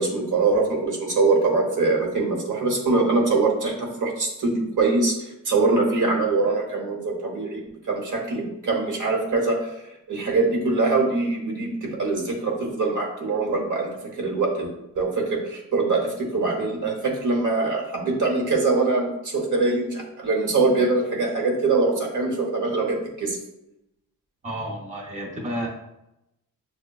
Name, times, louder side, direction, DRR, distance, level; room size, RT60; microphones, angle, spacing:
voice 1, 0.0-9.7 10.1-14.7 14.9-23.4, right 3 dB, 60° right, -1 dB, 0.9 m, -23 dB
voice 2, 24.4-25.7, right 1 dB, 20° right, -2 dB, 0.8 m, -31 dB
6.1 x 2.1 x 2.2 m, 0.88 s
wide cardioid pair, 100°, 34 cm